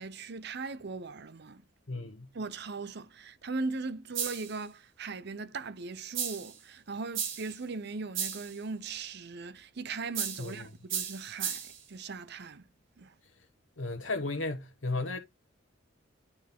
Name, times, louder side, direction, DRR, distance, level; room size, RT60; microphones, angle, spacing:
voice 1, 0.0-1.6 2.3-12.6 13.0-13.1, right 3 dB, 60° right, 0.7 m, -39 dB
voice 2, 1.9-2.3 10.4-10.6 13.8-15.2, left 2 dB, 70° left, 1.1 m, -34 dB
sound 1, 4.1-4.6 6.1-6.6 7.1-7.6 8.1-8.6 10.1-10.6 10.9-11.8, right 8 dB, 85° right, 1.7 m, -35 dB
9.7 x 4.3 x 3.7 m
head